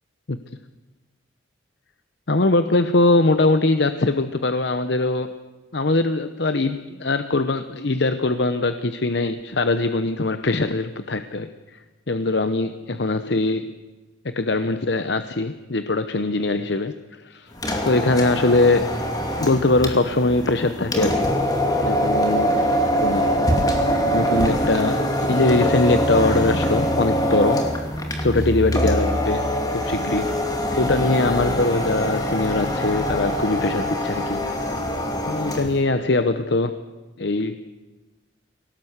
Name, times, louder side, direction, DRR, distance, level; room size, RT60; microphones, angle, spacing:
voice 1, 2.3-5.3 5.7-11.8 12.1-13.8 14.3-17.5 17.9-19.0 19.4-21.3 21.8-23.3 24.1-27.6 28.2-30.4 30.8-34.4 35.3-36.8 37.2-37.6, left 2 dB, 65° left, 10 dB, 0.9 m, -22 dB
sound 1, 17.5-35.8, equal, 20° left, 2.6 m, -23 dB
23.0 x 18.5 x 8.1 m, 1.2 s
head